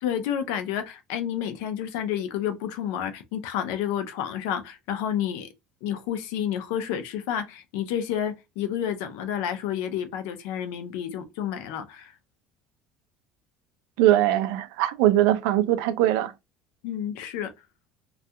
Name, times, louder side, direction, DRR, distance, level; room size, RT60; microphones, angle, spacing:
voice 1, 0.0-5.5 5.8-12.1 16.8-17.5, left 9 dB, 80° left, 0.5 m, -30 dB
voice 2, 14.0-16.3, right 13 dB, 75° right, 0.4 m, -21 dB
2.3 x 2.3 x 2.7 m
cardioid pair, 180°, 0 cm